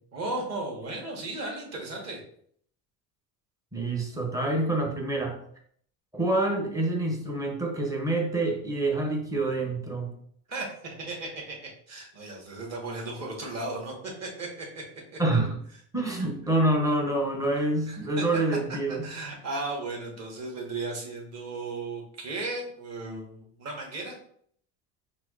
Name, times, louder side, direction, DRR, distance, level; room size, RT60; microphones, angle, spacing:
voice 1, 0.1-2.2 10.5-14.8 15.1-15.2 17.9-18.2 18.9-24.1, right 2 dB, 30° right, -1 dB, 1.3 m, -35 dB
voice 2, 3.7-5.4 6.1-10.1 15.2-15.6 15.9-19.1, right 2 dB, 5° right, 1 dB, 0.6 m, -27 dB
5.8 x 2.7 x 2.4 m, 0.63 s
cardioid pair, 130°, 50 cm